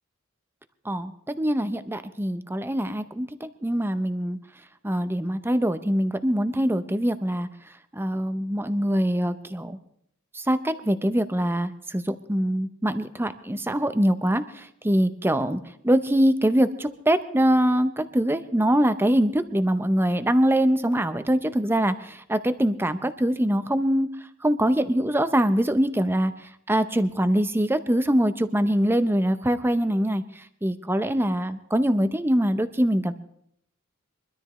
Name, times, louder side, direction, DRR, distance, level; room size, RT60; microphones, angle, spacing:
voice 1, 0.8-4.4 4.8-7.5 7.9-9.8 10.3-24.1 24.4-26.3 26.7-30.2 30.6-33.1, equal, 10° right, 10 dB, 0.7 m, -23 dB
23.5 x 13.0 x 3.2 m, 0.72 s
head